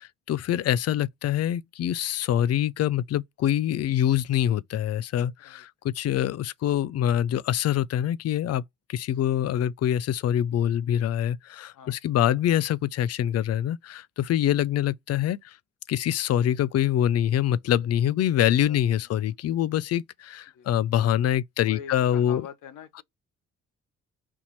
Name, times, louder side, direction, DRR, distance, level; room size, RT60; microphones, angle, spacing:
voice 1, 0.0-8.6 8.9-15.4 15.9-22.5, left 11 dB, 50° left, 0.5 m, -25 dB
voice 2, 18.6-19.1 20.5-20.7 21.6-23.0, left 8 dB, 70° left, 1.0 m, -44 dB
4.4 x 2.8 x 4.1 m
hypercardioid pair, 50°, 32 cm